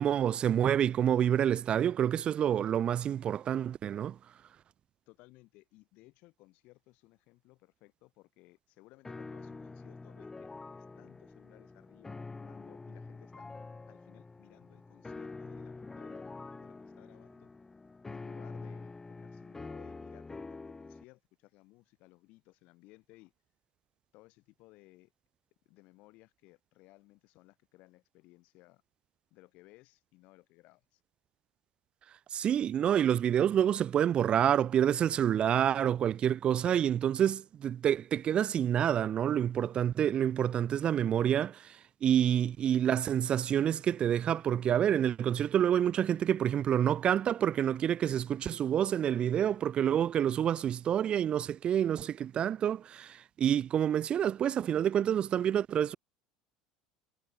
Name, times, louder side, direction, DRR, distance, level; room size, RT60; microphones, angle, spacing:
voice 1, 0.0-4.2 32.3-56.0, right 9 dB, 45° right, 0.7 m, -28 dB
voice 2, 5.1-13.5 13.9-16.3 16.6-17.5 18.1-23.3 24.1-25.1 25.7-28.8 29.3-31.0, left 21 dB, 65° left, 7.2 m, -60 dB
sound 1, 9.0-21.0, left 3 dB, 20° left, 2.3 m, -46 dB
hypercardioid pair, 80°, 3 cm